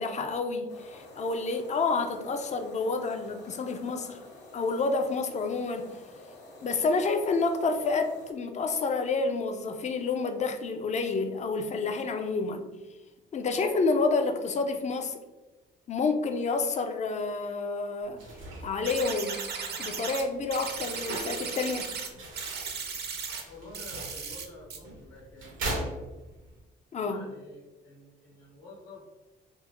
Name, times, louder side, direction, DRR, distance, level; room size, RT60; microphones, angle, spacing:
voice 1, 0.0-4.2 4.5-5.9 6.6-12.7 13.3-15.2 15.9-18.2 18.6-19.4 19.8-21.9 26.9-27.3, left 4 dB, 35° left, 6 dB, 0.4 m, -29 dB
sound 1, 0.7-8.3, left 1 dB, 60° left, 0.8 m, -49 dB
sound 2, 18.0-26.6, right 1 dB, 85° right, 0.8 m, -41 dB
sound 3, 18.8-20.2 20.5-22.1 22.4-23.4 23.7-24.4 24.7-24.8, right 6 dB, 55° right, 0.5 m, -36 dB
voice 2, 23.5-25.6 27.0-29.0, left 2 dB, 85° left, -5 dB, 1.2 m, -49 dB
3.5 x 2.0 x 2.9 m, 1.1 s
cardioid pair, 90°, 20 cm